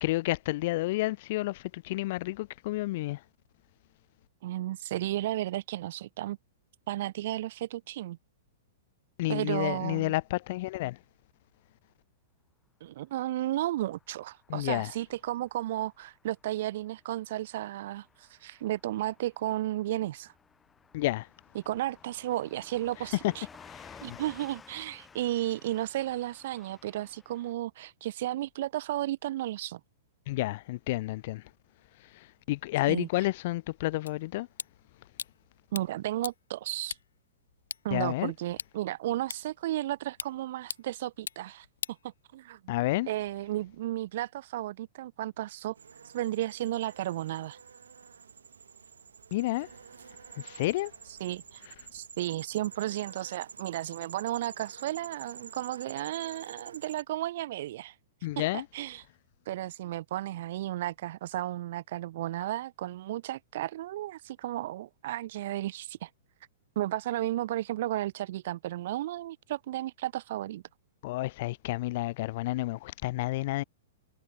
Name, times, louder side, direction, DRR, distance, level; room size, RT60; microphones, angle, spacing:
voice 1, 0.0-3.2 9.2-11.0 14.5-14.9 20.9-21.3 23.7-24.2 30.3-31.4 32.1-34.5 37.9-38.3 42.7-43.1 49.3-49.7 50.4-50.9 58.2-58.6 71.0-73.6, left 18 dB, 55° left, 0.5 m, -30 dB
voice 2, 4.4-6.4 6.9-8.2 9.3-10.1 12.8-20.3 21.5-23.5 24.0-29.8 32.9-33.1 35.7-37.0 37.8-41.7 42.0-42.7 43.1-45.8 46.0-47.6 51.1-51.6 51.9-58.0 58.4-59.1 59.5-66.1 66.8-70.6, right 14 dB, 60° right, 2.1 m, -33 dB
Car passing by / Truck, 13.2-27.5, left 5 dB, 15° left, 7.9 m, -56 dB
sound 1, 34.1-42.7, left 7 dB, 80° left, 3.9 m, -44 dB
sound 2, 45.8-57.0, right 6 dB, 85° right, 5.8 m, -49 dB
hypercardioid pair, 120°, 0 cm